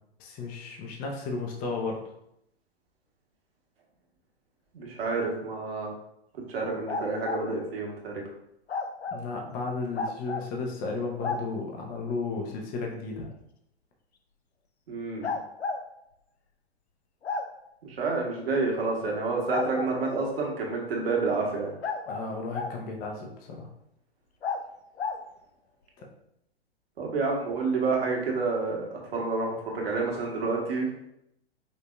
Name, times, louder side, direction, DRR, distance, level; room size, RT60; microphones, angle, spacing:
voice 1, 0.2-2.1 9.1-13.3 22.1-23.7 26.0-26.1, left 3 dB, 25° left, 1 dB, 0.9 m, -34 dB
voice 2, 4.7-5.9 6.5-8.2 14.9-15.3 17.8-21.7 27.0-30.9, right 3 dB, 60° right, -1 dB, 1.5 m, -29 dB
sound 1, 6.9-7.4 8.7-9.2 9.9-10.5 11.2-11.4 13.2-13.3 15.2-15.8 17.2-17.5 19.5-20.2 21.8-22.8 24.4-24.6 25.0-25.2, left 4 dB, 75° left, 0.7 m, -32 dB
5.3 x 3.9 x 2.3 m, 0.77 s
figure-of-eight pair, 110°, 33 cm